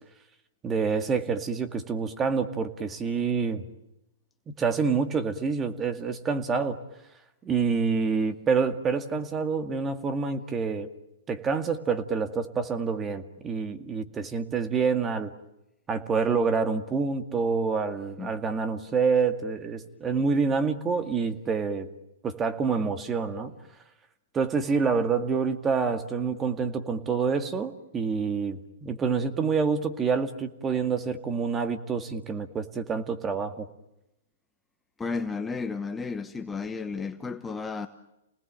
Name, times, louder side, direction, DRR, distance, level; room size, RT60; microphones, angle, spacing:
voice 1, 0.6-3.6 4.5-6.8 7.4-10.9 11.3-15.3 15.9-21.9 22.2-23.5 24.3-33.7, right 5 dB, 20° right, 2.1 m, -27 dB
voice 2, 35.0-37.9, left 4 dB, 10° left, 1.1 m, -33 dB
30.0 x 19.5 x 9.0 m
hypercardioid pair, 135°, 0 cm